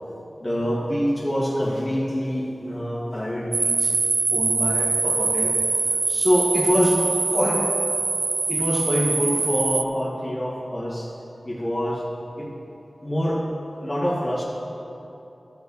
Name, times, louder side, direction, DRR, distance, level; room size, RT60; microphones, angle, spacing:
voice 1, 0.4-3.9 4.3-5.5 6.1-7.0 7.3-7.6 8.5-11.1 11.4-12.1 12.4-12.5 13.0-13.4 13.7-14.4, equal, 30° left, -5 dB, 1.7 m, -25 dB
sound 1, 3.5-9.8, right 3 dB, 75° right, 0.3 m, -23 dB
12.5 x 8.0 x 4.0 m, 2.9 s
wide cardioid pair, 50°, 0 cm